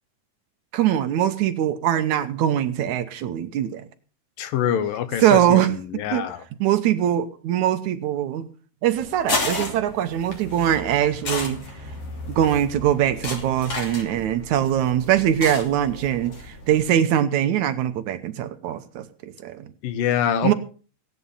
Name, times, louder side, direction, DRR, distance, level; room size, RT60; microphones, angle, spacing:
voice 1, 0.7-3.9 5.2-5.7 6.1-6.3 6.6-8.5 8.8-11.6 12.3-19.7 20.4-20.5, right 11 dB, 75° right, 2.0 m, -22 dB
voice 2, 4.4-5.6 5.9-6.4 19.8-20.5, left 9 dB, 90° left, 2.9 m, -24 dB
sound 1, 8.9-16.9, left 2 dB, 45° left, 3.9 m, -33 dB
16.5 x 9.9 x 5.5 m
omnidirectional pair, 3.8 m